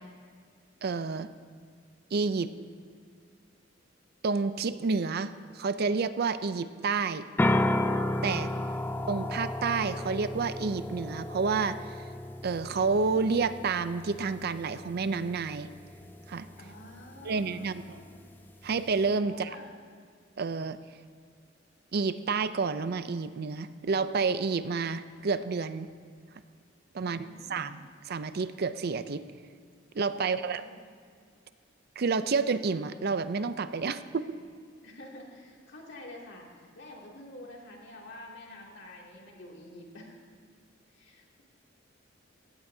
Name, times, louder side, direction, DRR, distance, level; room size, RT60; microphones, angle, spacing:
voice 1, 0.8-1.3 2.1-2.5 4.2-7.3 8.2-8.5 9.1-12.0 12.4-15.7 16.3-16.5 17.2-17.8 18.6-19.5 20.4-20.8 21.9-25.9 26.9-29.2 29.9-30.6 32.0-34.3, right 4 dB, 55° right, 12 dB, 0.5 m, -29 dB
sound 1, 7.4-19.1, left 1 dB, 10° left, 0.4 m, -34 dB
voice 2, 8.3-8.9 16.6-18.2 19.2-19.7 27.0-27.7 30.2-30.9 34.1-34.3 34.8-40.3 40.9-41.2, left 1 dB, 65° left, -2 dB, 2.6 m, -48 dB
18.0 x 16.0 x 2.8 m, 2.1 s
head